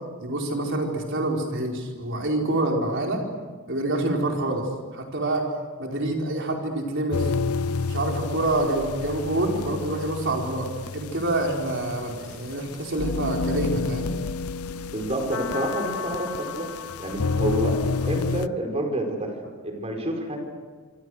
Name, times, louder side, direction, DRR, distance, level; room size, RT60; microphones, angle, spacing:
voice 1, 0.2-3.2 3.7-4.7 4.9-5.4 5.8-7.3 7.9-14.1, right 2 dB, 55° right, 0 dB, 4.9 m, -26 dB
sound 1, 7.1-18.5, left 4 dB, 85° left, 0.6 m, -30 dB
voice 2, 14.9-16.7 17.0-17.8 18.1-19.3 19.6-20.4, right 1 dB, 30° right, 2 dB, 4.7 m, -28 dB
26.5 x 26.5 x 6.5 m, 1.5 s
head